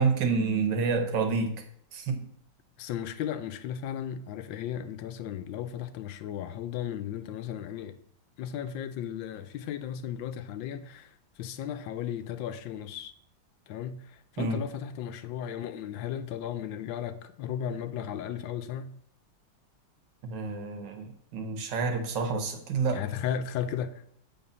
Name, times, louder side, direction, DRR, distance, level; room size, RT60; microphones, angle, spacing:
voice 1, 0.0-1.6 1.9-2.3 14.4-14.6 20.2-23.0, right 4 dB, 70° right, 1.6 m, -28 dB
voice 2, 2.8-8.0 8.4-11.1 11.4-13.1 13.7-18.9 22.9-24.1, left 9 dB, 85° left, 1.3 m, -35 dB
7.9 x 3.9 x 5.4 m
omnidirectional pair, 2.0 m